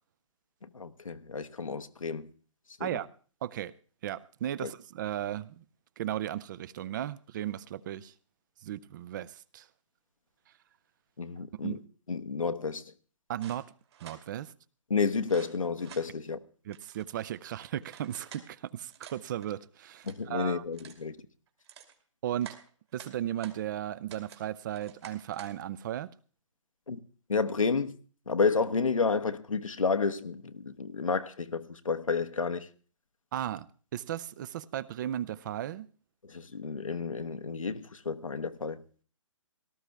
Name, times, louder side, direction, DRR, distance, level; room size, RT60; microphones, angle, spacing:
voice 1, 0.7-2.3 2.8-3.0 4.6-4.7 11.2-11.8 12.1-12.8 14.9-16.4 20.1-21.2 26.9-27.0 27.3-28.0 28.3-32.7 36.3-38.8, left 4 dB, 85° left, 1.1 m, -31 dB
voice 2, 3.4-3.7 4.0-5.6 6.0-8.1 8.6-9.7 11.6-11.7 13.3-13.7 14.0-14.5 16.6-20.6 22.2-22.5 22.9-26.1 33.3-35.9, right 11 dB, 35° right, 0.5 m, -36 dB
sound 1, 13.4-14.2 15.2-16.1 16.7-18.5 18.9-19.5 19.9-20.3 20.7-21.0 21.5-21.9 22.4-23.6 24.1-24.4 24.7-25.5, right 9 dB, 55° right, 2.7 m, -50 dB
18.0 x 13.0 x 3.4 m
figure-of-eight pair, 135°, 17 cm